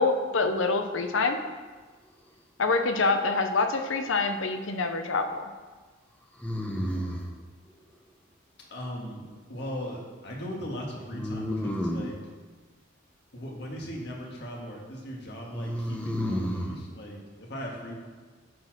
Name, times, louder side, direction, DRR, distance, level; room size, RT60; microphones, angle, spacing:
voice 1, 0.0-1.4 2.6-5.5, left 3 dB, 85° left, 7 dB, 0.8 m, -26 dB
sound 1, 3.7-4.3 6.4-7.4 11.1-12.2 15.5-16.8, equal, 5° left, 0.7 m, -31 dB
voice 2, 8.7-12.2 13.3-18.0, equal, 60° left, -1 dB, 1.7 m, -38 dB
9.4 x 4.4 x 6.0 m, 1.4 s
head